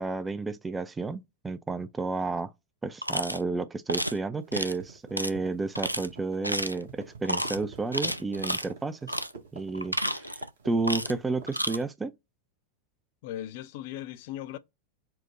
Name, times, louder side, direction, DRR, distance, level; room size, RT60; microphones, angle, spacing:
voice 1, 0.0-2.5 2.8-9.1 9.5-12.1, right 3 dB, 15° right, 0.4 m, -31 dB
sound 1, 3.0-3.4 3.9-4.2 4.5-4.8 5.2-5.3 5.7-6.1 6.4-6.8 7.2-7.6 7.9-8.7 9.1-9.3 9.7-10.5 10.8-11.2 11.5-11.8, equal, 90° right, 0.3 m, -31 dB
sound 2, 4.4-11.8, right 5 dB, 65° right, 1.2 m, -47 dB
voice 2, 13.2-14.6, left 12 dB, 50° left, 0.4 m, -38 dB
4.5 x 2.1 x 4.1 m
figure-of-eight pair, 90°, 0 cm